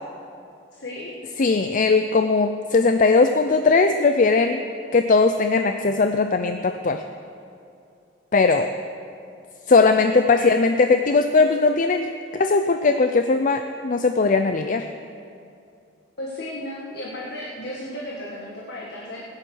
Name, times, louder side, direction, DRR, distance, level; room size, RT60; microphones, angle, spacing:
voice 1, 0.7-1.1 10.3-10.5 16.2-19.2, left 1 dB, 60° left, -3 dB, 1.8 m, -34 dB
voice 2, 1.4-4.6 4.9-7.0 8.3-8.7 9.7-14.9, left 4 dB, 45° left, 8 dB, 0.5 m, -19 dB
16.5 x 10.5 x 6.3 m, 2.5 s
head